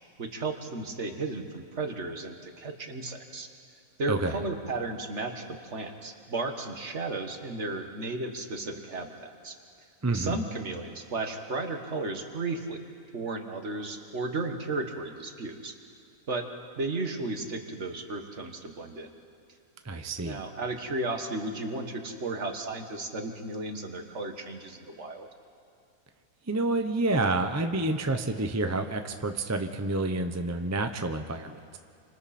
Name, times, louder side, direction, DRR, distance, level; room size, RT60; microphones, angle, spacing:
voice 1, 0.2-3.5 4.0-9.6 10.1-12.8 13.1-15.7 16.3-16.4 16.8-19.1 20.2-25.3, right 2 dB, 50° right, 5 dB, 1.8 m, -34 dB
voice 2, 4.1-4.4 10.0-10.4 19.8-20.5 26.5-31.8, right 2 dB, 15° right, 6 dB, 0.6 m, -29 dB
29.0 x 25.5 x 4.3 m, 2.3 s
omnidirectional pair, 1.5 m